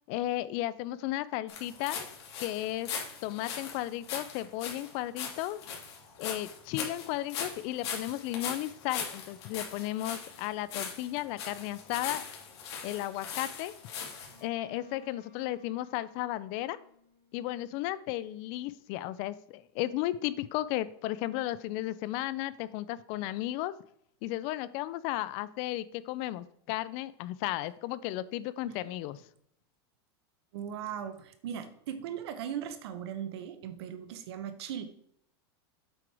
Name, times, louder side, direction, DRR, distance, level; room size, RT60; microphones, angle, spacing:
voice 1, 0.1-2.0 2.4-2.9 3.2-5.6 6.2-12.2 12.8-13.7 14.4-16.8 17.3-23.7 24.2-29.2, left 15 dB, 45° left, 16 dB, 0.4 m, -34 dB
sound 1, 1.5-14.4, left 6 dB, 85° left, 2.5 m, -40 dB
Bowed string instrument, 14.2-18.0, left 3 dB, 90° right, 2.9 m, -58 dB
voice 2, 30.5-34.8, right 9 dB, 75° right, 10 dB, 1.1 m, -38 dB
7.8 x 4.5 x 4.8 m, 0.67 s
supercardioid pair, 155°, 14 cm